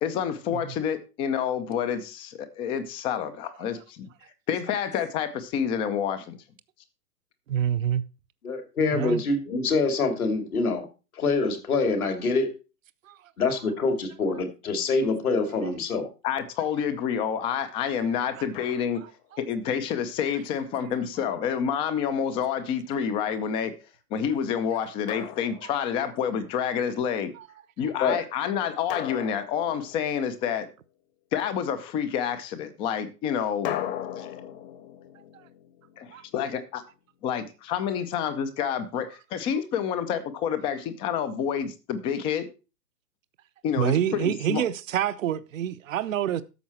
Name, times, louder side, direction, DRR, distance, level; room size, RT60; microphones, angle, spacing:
voice 1, 0.0-4.1 4.5-6.4 16.2-19.0 19.4-23.7 24.1-27.3 27.8-30.7 31.3-33.7 34.2-34.4 36.0-36.8 37.2-42.5 43.6-44.6, left 8 dB, 10° left, 0.5 m, -28 dB
voice 2, 7.5-8.0 8.9-9.2 13.1-13.2 27.4-27.5 35.3-35.4 36.1-36.2 43.8-46.4, right 10 dB, 55° right, 0.9 m, -27 dB
voice 3, 8.4-10.9 11.2-12.5 13.4-16.1 28.0-28.2, left 3 dB, 65° left, 2.9 m, -25 dB
Drum, 18.5-19.2 21.2-22.3 25.1-26.2 28.9-30.5 33.6-36.6, left 12 dB, 35° left, 1.3 m, -38 dB
12.5 x 7.0 x 4.4 m
figure-of-eight pair, 120°, 47 cm